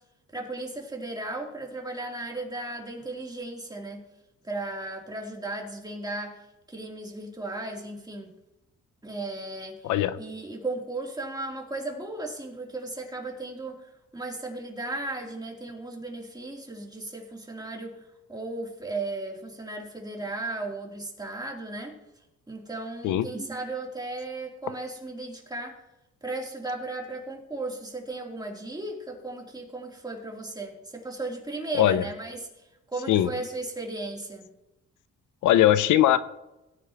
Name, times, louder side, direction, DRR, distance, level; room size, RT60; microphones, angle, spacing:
voice 1, 0.3-4.0 4.4-6.4 6.7-8.3 9.0-9.9 10.2-18.0 18.3-22.0 22.5-25.8 26.2-32.5 32.9-34.5, right 2 dB, 15° right, -1 dB, 3.4 m, -35 dB
voice 2, 9.8-10.2 23.0-23.2 31.8-32.0 33.1-33.3 35.4-36.2, left 12 dB, 85° left, 14 dB, 0.7 m, -20 dB
18.5 x 9.6 x 3.0 m, 0.93 s
cardioid pair, 90°, 30 cm